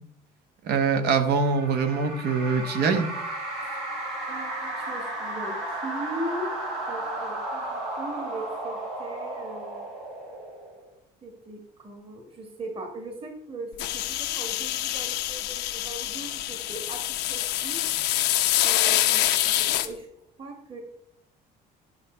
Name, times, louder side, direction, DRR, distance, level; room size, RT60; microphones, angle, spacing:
voice 1, 0.6-3.1, right 5 dB, 70° right, 8 dB, 1.2 m, -23 dB
sound 1, 1.2-10.9, right 1 dB, 90° right, 4.1 m, -34 dB
voice 2, 4.3-6.5 6.9-9.9 11.2-17.8 18.6-20.1 20.4-20.8, right 1 dB, 35° right, 4 dB, 1.7 m, -39 dB
sound 2, 13.8-19.9, left 14 dB, 85° left, 0.8 m, -26 dB
10.5 x 5.7 x 4.4 m, 0.72 s
cardioid pair, 110°, 17 cm